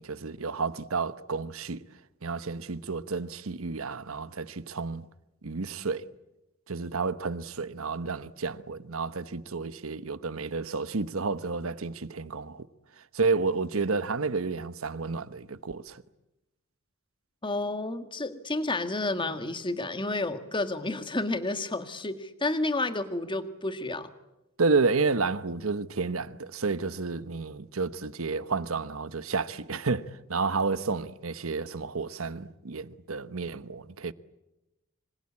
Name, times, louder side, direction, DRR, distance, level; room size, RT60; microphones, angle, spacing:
voice 1, 0.0-1.8 2.2-5.1 5.4-6.1 6.7-12.7 13.1-16.0 24.6-34.1, right 4 dB, 75° right, 1.0 m, -30 dB
voice 2, 17.4-24.1, left 2 dB, 25° left, 1.8 m, -30 dB
26.5 x 25.5 x 8.7 m
head